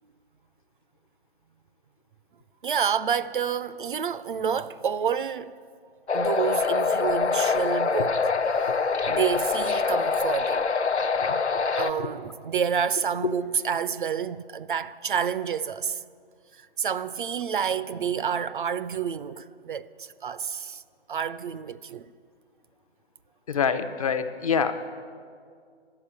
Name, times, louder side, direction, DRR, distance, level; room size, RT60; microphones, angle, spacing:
voice 1, 2.6-5.6 6.1-10.7 11.8-16.0 16.8-20.8 21.1-22.1, right 7 dB, 50° right, 0.4 m, -29 dB
sound 1, 6.1-11.9, left 5 dB, 90° left, 0.9 m, -25 dB
voice 2, 23.5-24.8, left 6 dB, 35° left, 0.6 m, -26 dB
11.5 x 7.9 x 8.7 m
figure-of-eight pair, 140°, 33 cm